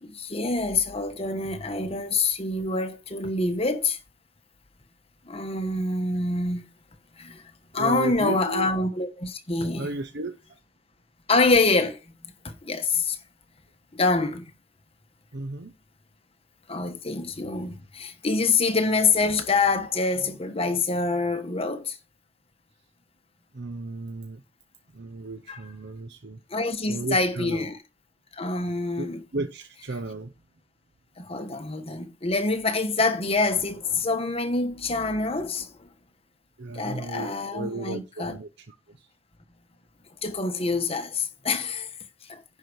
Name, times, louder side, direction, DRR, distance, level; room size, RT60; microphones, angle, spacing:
voice 1, 0.0-4.0 5.2-6.7 7.2-7.4 7.7-10.0 11.3-13.2 13.9-14.5 16.7-22.0 25.5-25.7 26.5-27.8 28.3-29.2 31.2-35.9 36.7-38.4 40.2-41.9 42.3-42.4, left 3 dB, 30° left, 1.2 m, -26 dB
voice 2, 7.7-8.7 9.7-10.4 15.3-15.7 23.5-24.4 24.9-26.4 26.9-27.7 29.0-30.3 36.6-39.1, right 3 dB, 60° right, 0.8 m, -34 dB
10.5 x 4.7 x 6.3 m
head